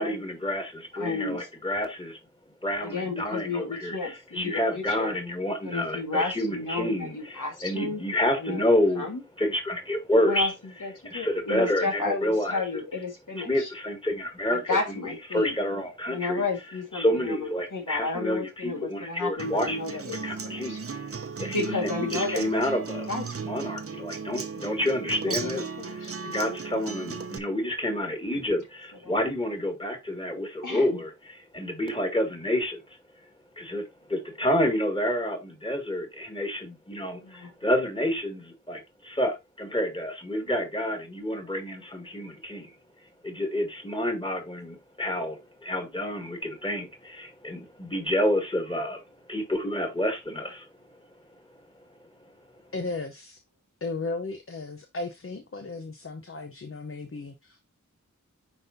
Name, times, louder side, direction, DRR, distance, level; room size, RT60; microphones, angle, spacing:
voice 1, 0.0-2.2 2.6-9.1 9.4-10.5 11.0-12.6 13.4-14.8 15.0-16.4 16.9-21.1 21.4-23.1 23.4-25.6 25.9-33.0 33.6-33.8 34.1-42.7 43.2-50.7, left 1 dB, 15° left, 2.1 m, -29 dB
voice 2, 1.0-1.5 2.8-5.2 5.6-8.0 8.4-9.2 10.3-10.5 10.8-13.7 14.5-15.5 16.1-20.8 21.5-22.4 22.9-23.2 23.5-23.6 25.3-26.1 29.0-29.1 30.6-30.9 37.2-37.5, left 3 dB, 80° left, 1.7 m, -32 dB
Acoustic guitar, 19.4-27.4, right 5 dB, 50° right, 0.7 m, -36 dB
voice 3, 52.7-53.4 53.8-57.6, left 3 dB, 45° left, 0.8 m, -35 dB
9.7 x 3.9 x 2.7 m
wide cardioid pair, 45°, 31 cm